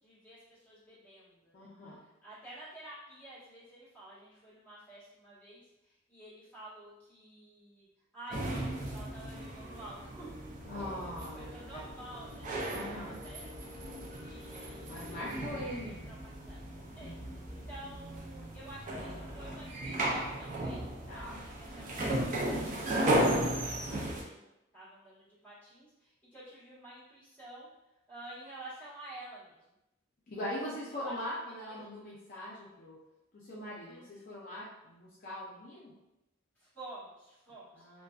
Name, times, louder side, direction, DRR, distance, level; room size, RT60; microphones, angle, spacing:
voice 1, 0.0-1.7 2.0-7.9 8.1-10.3 10.8-16.6 17.0-20.8 21.1-22.7 23.0-27.7 28.1-29.6 30.9-32.1 33.8-34.3 36.5-38.0, right 1 dB, 10° left, -10 dB, 1.1 m, -51 dB
voice 2, 1.5-2.0 10.7-11.8 12.7-13.2 14.9-15.9 17.0-17.2 21.1-21.3 30.3-33.0 33.3-35.9 37.7-38.0, left 1 dB, 45° left, -7 dB, 0.4 m, -41 dB
sound 1, 8.3-24.2, right 1 dB, 40° right, 0.4 m, -35 dB
2.5 x 2.2 x 2.2 m, 0.92 s
head